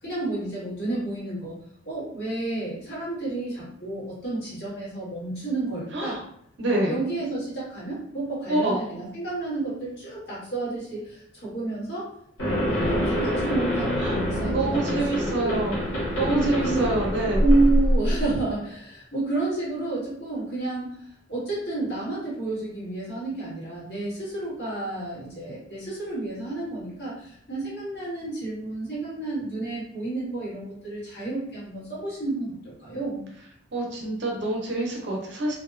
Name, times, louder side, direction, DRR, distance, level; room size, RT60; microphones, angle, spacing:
voice 1, 0.0-1.6 1.8-6.2 6.7-12.1 12.4-15.7 16.3-16.8 17.4-21.0 21.3-33.2, right 2 dB, 55° left, -8 dB, 1.4 m, -30 dB
voice 2, 5.9-6.2 6.6-7.0 8.5-8.8 14.0-14.2 14.5-15.8 16.2-17.4 33.7-35.5, right 2 dB, 65° right, -1 dB, 0.6 m, -26 dB
sound 1, 12.4-18.4, equal, 75° left, 1.0 m, -25 dB
2.6 x 2.2 x 2.4 m, 0.70 s
head